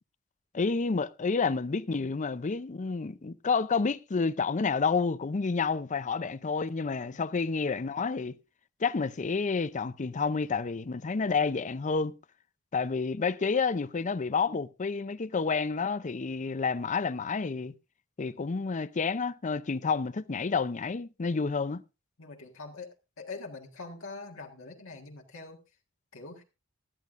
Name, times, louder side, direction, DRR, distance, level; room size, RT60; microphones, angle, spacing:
voice 1, 0.5-8.4 8.8-12.1 12.7-17.7 18.2-21.8, left 4 dB, 35° left, 0.5 m, -29 dB
voice 2, 22.2-25.6 26.1-26.4, left 3 dB, 65° left, 1.7 m, -44 dB
17.5 x 12.5 x 2.5 m
head